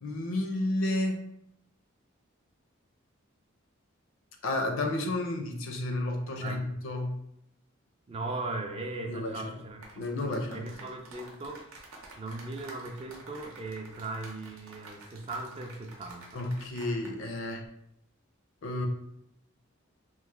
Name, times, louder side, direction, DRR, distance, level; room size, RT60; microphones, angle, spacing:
voice 1, 0.0-1.2 4.4-7.2 9.1-9.5 10.0-10.7 16.3-17.6 18.6-18.9, left 2 dB, 65° left, 4 dB, 0.5 m, -31 dB
voice 2, 8.1-11.6 12.2-16.4, right 2 dB, 30° right, 4 dB, 0.3 m, -38 dB
sound 1, 9.7-17.2 17.4-17.7, right 2 dB, 80° right, 0.7 m, -50 dB
3.0 x 2.1 x 3.2 m, 0.77 s
head